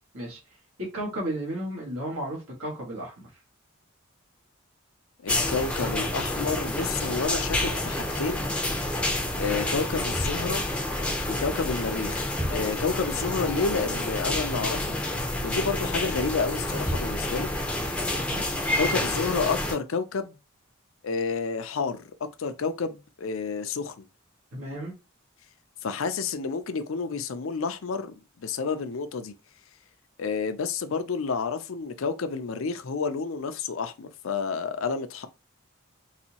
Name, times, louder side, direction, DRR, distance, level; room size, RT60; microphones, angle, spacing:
voice 1, 0.8-3.1 18.2-18.4 24.5-24.9, right 1 dB, 90° right, 1.8 m, -33 dB
voice 2, 5.2-8.5 9.4-10.6 11.3-14.8 15.4-17.5 18.4-20.4 21.0-22.1 22.4-24.1 25.8-29.3 30.2-35.3, left 5 dB, 75° left, 0.5 m, -30 dB
sound 1, 5.3-19.8, left 1 dB, 5° left, 0.5 m, -29 dB
4.1 x 2.6 x 2.8 m
head